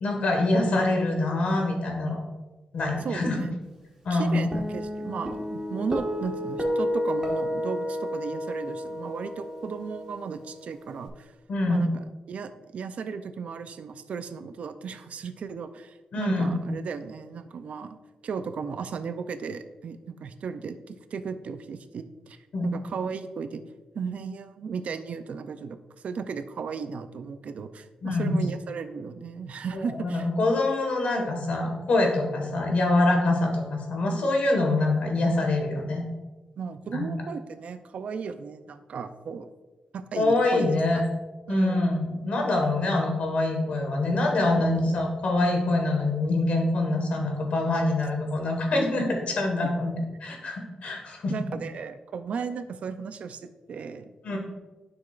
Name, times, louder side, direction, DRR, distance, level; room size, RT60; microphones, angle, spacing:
voice 1, 0.0-2.2 2.7-3.4 4.0-4.5 11.5-11.8 16.1-16.6 22.5-22.7 28.0-28.4 29.7-36.0 36.9-37.1 40.1-41.0 41.5-49.9 50.2-51.3 54.2-54.4, left 2 dB, 60° left, 2 dB, 1.6 m, -25 dB
voice 2, 3.0-3.6 4.1-11.3 11.7-22.4 22.6-23.6 23.9-25.8 26.0-30.3 36.6-39.5 39.9-41.0 41.5-41.9 44.5-44.6 51.3-54.4, right 5 dB, 60° right, 10 dB, 0.4 m, -35 dB
Guitar, 4.5-11.1, equal, 15° right, 1.3 m, -31 dB
10.5 x 5.8 x 2.4 m, 1.2 s
wide cardioid pair, 155°, 3 cm